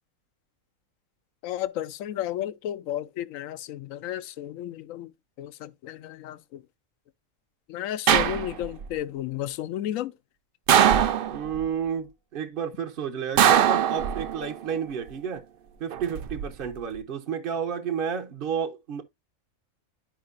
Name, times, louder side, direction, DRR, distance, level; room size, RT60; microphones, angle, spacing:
voice 1, 1.4-5.1 5.4-6.6 7.7-10.1, left 12 dB, 80° left, 1.0 m, -33 dB
sound 1, 8.1-8.8 10.7-11.6 13.4-14.5 15.9-16.4, right 9 dB, 65° right, 0.5 m, -21 dB
voice 2, 11.3-15.4 15.8-19.0, right 7 dB, 50° right, 0.8 m, -31 dB
11.5 x 4.8 x 2.5 m
omnidirectional pair, 1.4 m